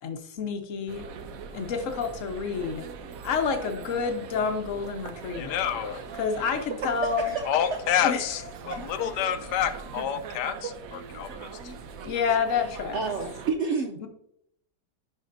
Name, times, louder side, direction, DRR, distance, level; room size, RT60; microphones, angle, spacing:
voice 1, 0.0-1.1 1.5-2.9 3.2-5.7 6.1-7.3 8.0-8.5 8.8-8.9 12.0-13.0 14.0-14.1, left 6 dB, 55° left, 6 dB, 1.1 m, -29 dB
sound 1, 0.9-13.5, right 5 dB, 65° right, 1.0 m, -42 dB
voice 2, 5.4-6.0 7.5-8.4 8.7-10.7 11.2-11.5, left 9 dB, 75° left, 10 dB, 1.2 m, -28 dB
voice 3, 7.2-7.7 8.7-8.9 9.4-9.6 10.6-10.7 11.2-11.3 12.6-14.0, right 4 dB, 80° right, 3 dB, 0.6 m, -31 dB
11.0 x 4.6 x 2.6 m, 0.75 s
omnidirectional pair, 1.9 m